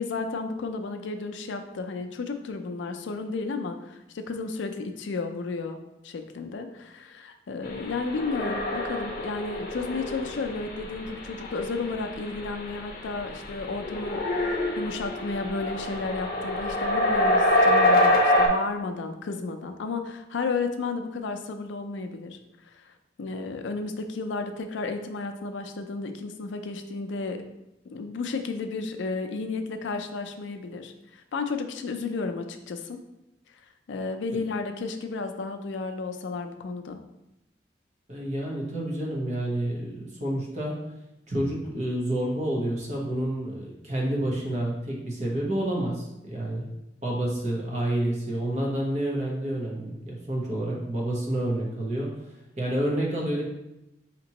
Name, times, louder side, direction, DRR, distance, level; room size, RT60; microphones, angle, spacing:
voice 1, 0.0-5.8 6.0-22.4 23.2-27.4 27.9-33.0 33.9-37.0, left 4 dB, 85° left, 6 dB, 0.4 m, -33 dB
sound 1, 7.9-18.5, left 1 dB, 50° left, 0.7 m, -25 dB
voice 2, 38.1-40.8 41.3-46.7 47.0-52.1 52.6-53.4, right 1 dB, 40° right, -3 dB, 1.0 m, -29 dB
5.1 x 2.9 x 2.9 m, 0.90 s
head